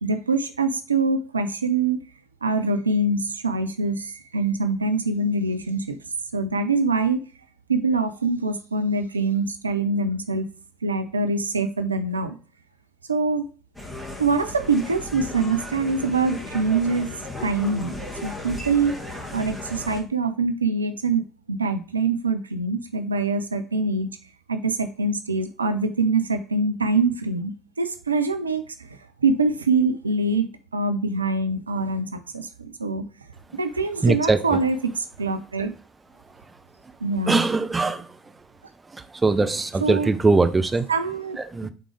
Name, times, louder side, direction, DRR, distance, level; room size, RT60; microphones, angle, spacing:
voice 1, 0.0-2.0 2.4-6.0 6.3-7.2 7.7-10.4 10.8-12.4 13.1-13.5 14.2-17.1 17.4-18.0 18.2-18.9 19.3-24.1 24.5-28.6 28.9-30.5 30.7-33.1 33.5-35.7 37.0-37.4 39.8-40.1 40.9-41.4, right 3 dB, 85° right, 8 dB, 0.5 m, -24 dB
sound 1, 13.7-20.0, left 1 dB, 10° left, 2.3 m, -36 dB
voice 2, 34.0-34.6 37.3-38.1 39.2-40.9 41.5-41.7, right 3 dB, 20° right, 9 dB, 0.7 m, -21 dB
8.4 x 3.7 x 3.3 m, 0.37 s
figure-of-eight pair, 60°, 0 cm